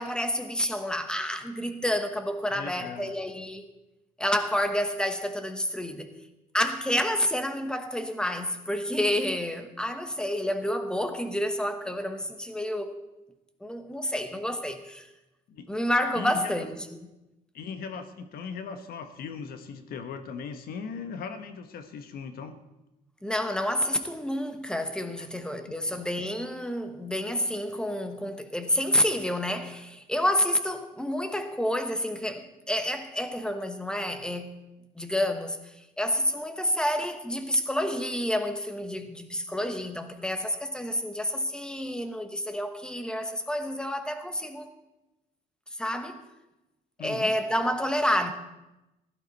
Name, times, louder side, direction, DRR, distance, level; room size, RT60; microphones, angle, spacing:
voice 1, 0.0-3.7 4.2-6.1 6.5-13.0 13.6-15.1 15.7-17.1 23.2-34.6 35.0-35.6 36.0-44.7 45.8-46.2 47.0-48.3, left 1 dB, 5° left, 1.1 m, -29 dB
voice 2, 2.5-3.1 15.5-15.7 16.1-16.7 17.5-22.6 25.2-25.3 47.0-47.3, left 6 dB, 60° left, 1.2 m, -38 dB
16.0 x 11.5 x 4.1 m
cardioid pair, 110°, 17 cm